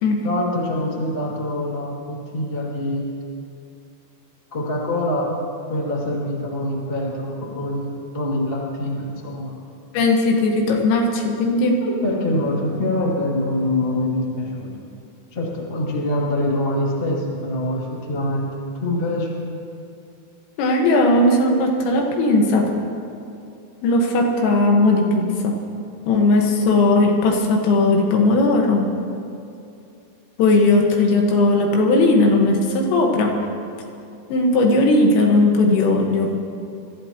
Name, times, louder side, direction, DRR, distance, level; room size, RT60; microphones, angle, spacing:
voice 1, 0.2-3.0 4.5-5.3 5.7-9.5 11.8-14.8 15.3-18.5 18.8-19.3, left 1 dB, 30° left, -4 dB, 1.0 m, -24 dB
voice 2, 9.9-11.9 20.6-22.7 23.8-25.6 26.1-28.9 30.4-33.4 34.3-36.3, left 2 dB, 85° left, 1 dB, 4.1 m, -17 dB
26.0 x 14.0 x 3.0 m, 2.5 s
omnidirectional pair, 5.8 m